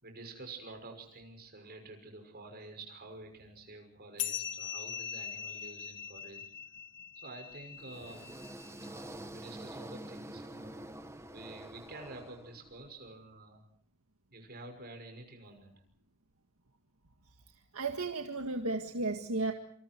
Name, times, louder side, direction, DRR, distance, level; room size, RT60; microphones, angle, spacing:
voice 1, 0.0-6.4 7.1-10.9 11.3-13.6 14.3-15.7, right 2 dB, 45° right, 5 dB, 6.0 m, -49 dB
sound 1, 4.2-9.1, left 10 dB, 55° left, 1.8 m, -41 dB
sound 2, 7.8-12.9, right 1 dB, 15° right, 1.2 m, -47 dB
voice 2, 17.7-19.5, right 3 dB, 75° right, 4 dB, 1.9 m, -34 dB
27.0 x 26.5 x 4.6 m, 0.63 s
head